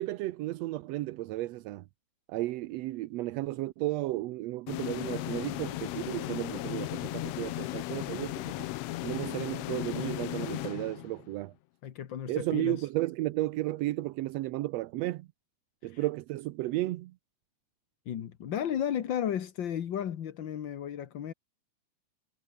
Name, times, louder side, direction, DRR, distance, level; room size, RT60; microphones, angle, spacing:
voice 1, 0.0-1.9 2.3-8.7 9.0-11.5 12.3-15.3 15.8-17.1, right 17 dB, 75° right, 1.7 m, -33 dB
sound 1, 4.7-11.4, left 18 dB, 75° left, 1.7 m, -36 dB
voice 2, 11.8-12.9 15.8-16.1 18.0-21.3, left 9 dB, 50° left, 1.5 m, -34 dB
omnidirectional pair, 3.3 m